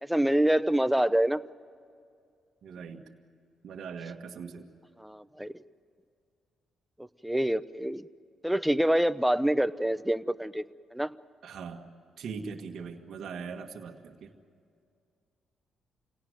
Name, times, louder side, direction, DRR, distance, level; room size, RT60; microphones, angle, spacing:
voice 1, 0.0-1.4 5.0-5.5 7.0-8.0 8.4-11.1, right 1 dB, 5° right, 14 dB, 0.9 m, -26 dB
voice 2, 2.6-3.1 3.6-4.7 11.4-11.8 12.2-14.3, right 5 dB, 60° right, 2 dB, 1.7 m, -40 dB
26.5 x 17.5 x 9.2 m, 2.3 s
hypercardioid pair, 50°, 0 cm